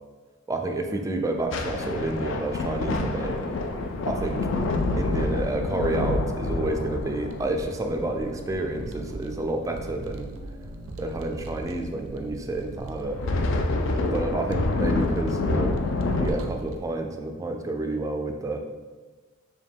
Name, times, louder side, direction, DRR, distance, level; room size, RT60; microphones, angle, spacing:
voice 1, 0.5-3.4 4.1-4.5 5.0-10.3 11.0-13.2 14.0-15.7 16.2-18.6, right 2 dB, 15° right, 4 dB, 0.3 m, -29 dB
sound 1, 1.4-16.8, right 2 dB, 85° right, 0.4 m, -42 dB
sound 2, 1.5-9.2 13.0-16.3, left 2 dB, 65° left, 0.4 m, -27 dB
sound 3, 2.8-11.3, right 1 dB, 25° left, 1.1 m, -46 dB
5.0 x 2.3 x 3.4 m, 1.3 s
head